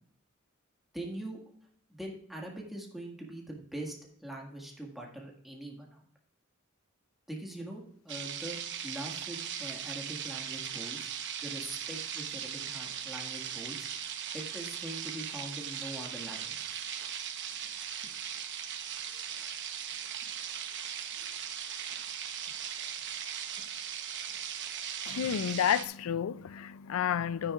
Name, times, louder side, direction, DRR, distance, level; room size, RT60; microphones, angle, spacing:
voice 1, 0.9-1.4 1.9-6.0 7.3-8.6 8.8-11.1 11.4-13.9 14.3-16.8, right 1 dB, ahead, 1.8 m, -43 dB
sound 1, 8.1-25.8, right 8 dB, 55° right, 1.0 m, -39 dB
voice 2, 25.1-27.5, left 9 dB, 70° left, 0.4 m, -30 dB
12.5 x 9.7 x 2.4 m
head